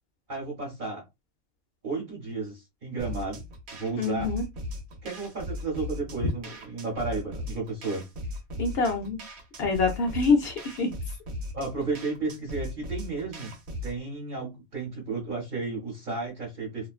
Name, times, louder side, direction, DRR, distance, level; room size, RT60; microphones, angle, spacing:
voice 1, 0.3-1.0 1.8-3.4 3.7-4.3 5.0-8.0 11.5-13.5 13.8-16.9, right 3 dB, 45° right, 1.0 m, -33 dB
sound 1, 3.0-14.0, left 1 dB, 65° right, 0.9 m, -38 dB
voice 2, 4.0-4.4 8.6-9.2 9.6-10.9, left 4 dB, 65° left, 0.7 m, -25 dB
2.4 x 2.2 x 2.3 m
omnidirectional pair, 1.3 m